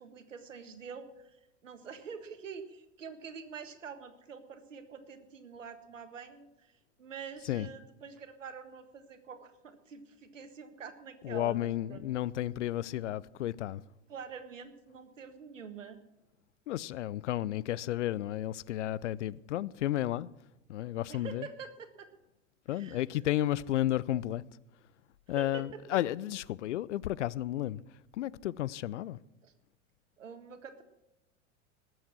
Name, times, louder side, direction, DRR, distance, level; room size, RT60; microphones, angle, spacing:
voice 1, 0.0-1.4 1.6-12.0 14.1-16.0 21.1-22.1 22.7-23.0 25.4-25.8 29.4-29.5 30.2-30.8, right 6 dB, 75° right, 1.6 m, -46 dB
voice 2, 11.2-13.8 16.7-20.3 20.7-21.5 22.7-24.4 25.3-27.8 28.1-29.2, left 13 dB, 65° left, 0.6 m, -32 dB
19.5 x 7.9 x 6.0 m
figure-of-eight pair, 85°, 38 cm